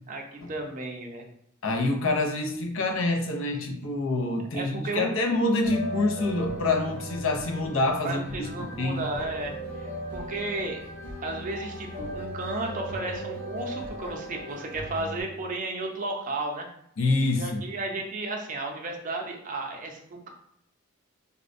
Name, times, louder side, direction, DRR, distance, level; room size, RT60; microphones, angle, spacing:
voice 1, 0.1-1.3 4.5-5.1 8.0-9.5 10.1-10.8 11.2-16.7 17.4-20.3, right 2 dB, 40° right, 2 dB, 0.5 m, -33 dB
voice 2, 1.6-9.0 17.0-17.6, left 2 dB, 65° left, 2 dB, 0.5 m, -26 dB
sound 1, 5.6-15.2, equal, 50° left, 1.3 m, -38 dB
4.0 x 2.1 x 2.5 m, 0.74 s
head